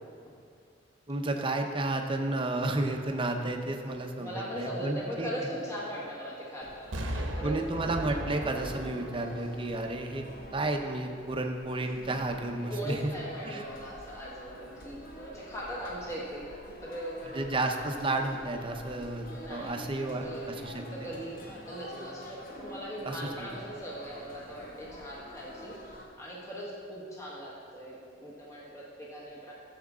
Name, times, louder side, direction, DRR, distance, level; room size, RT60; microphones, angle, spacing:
voice 1, 1.1-5.3 7.4-13.1 13.4-13.6 17.3-20.8 23.1-23.5, right 2 dB, 25° right, 3 dB, 0.8 m, -32 dB
voice 2, 4.2-7.5 12.7-16.5 16.8-17.5 19.3-28.0 28.2-29.5, equal, 15° left, -5 dB, 1.4 m, -40 dB
sound 1, 6.6-26.1, left 1 dB, 50° left, 1.3 m, -48 dB
Explosion, 6.9-10.9 11.3-11.4, right 1 dB, 85° right, 1.0 m, -38 dB
14.5 x 7.2 x 3.7 m, 2.3 s
head